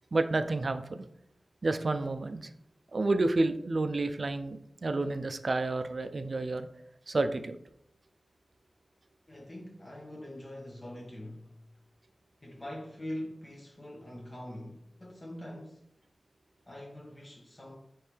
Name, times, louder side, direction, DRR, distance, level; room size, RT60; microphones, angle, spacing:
voice 1, 0.1-1.0 1.6-2.5 2.9-6.7 7.1-7.6, right 2 dB, 60° right, 0.4 m, -30 dB
voice 2, 9.3-11.8 12.4-15.9 16.6-17.7, left 1 dB, 35° left, 0.8 m, -43 dB
4.5 x 3.1 x 3.3 m
wide cardioid pair, 65°, 0 cm